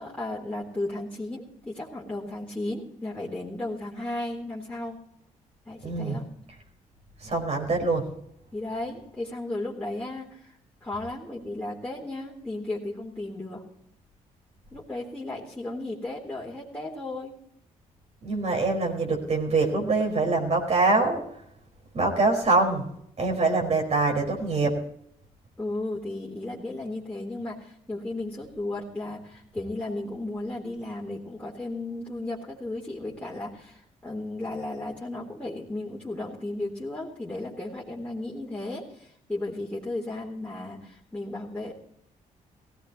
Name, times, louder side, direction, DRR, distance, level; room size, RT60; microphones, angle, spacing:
voice 1, 0.0-5.0 5.7-6.2 8.5-10.6 10.8-13.6 14.7-17.4 25.6-41.7, left 2 dB, 10° left, -5 dB, 3.8 m, -34 dB
voice 2, 5.8-6.2 7.2-8.1 18.2-21.2 21.9-22.9 23.2-24.8, right 3 dB, 50° right, 1 dB, 4.9 m, -24 dB
17.5 x 17.0 x 3.1 m, 0.71 s
supercardioid pair, 60°, 15 cm